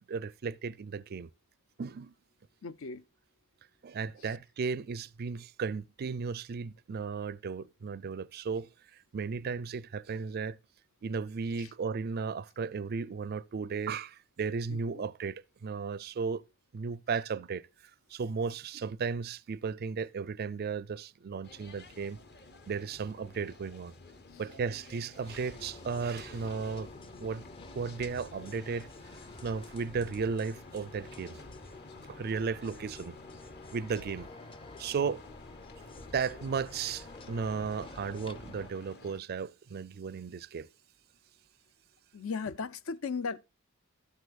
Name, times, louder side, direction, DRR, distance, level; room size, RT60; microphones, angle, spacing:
voice 1, 0.1-1.3 1.8-2.1 3.8-8.7 9.1-10.6 11.0-16.4 16.7-17.6 18.1-22.2 22.7-23.9 24.4-26.9 27.2-27.4 27.7-28.9 29.4-31.4 32.1-33.2 33.7-34.3 34.8-35.2 36.1-40.7, right 5 dB, 50° right, 0.4 m, -35 dB
voice 2, 2.6-3.0 11.6-11.7 14.7-15.0 24.3-24.4 42.1-43.4, left 5 dB, 70° left, 0.6 m, -37 dB
sound 1, 21.4-39.2, left 2 dB, 55° left, 1.1 m, -53 dB
sound 2, 25.2-38.7, left 3 dB, 25° left, 0.6 m, -49 dB
12.5 x 8.0 x 2.4 m
head